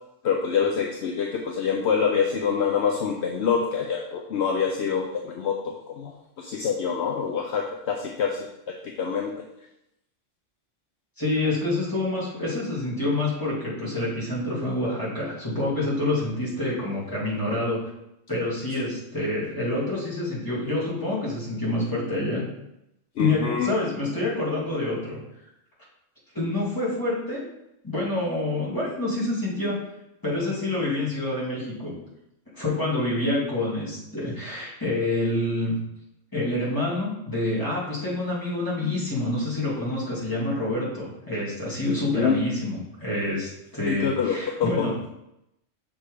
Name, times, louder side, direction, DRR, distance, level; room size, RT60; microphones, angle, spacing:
voice 1, 0.2-9.4 23.2-23.7 42.1-42.4 43.9-45.1, left 6 dB, 65° left, 2 dB, 0.9 m, -26 dB
voice 2, 11.2-17.8 18.3-22.4 23.2-25.2 26.3-27.4 27.8-29.8 30.2-31.9 32.5-35.8 36.3-44.9, left 2 dB, 15° left, -8 dB, 2.7 m, -27 dB
6.8 x 3.8 x 4.9 m, 0.85 s
omnidirectional pair, 1.3 m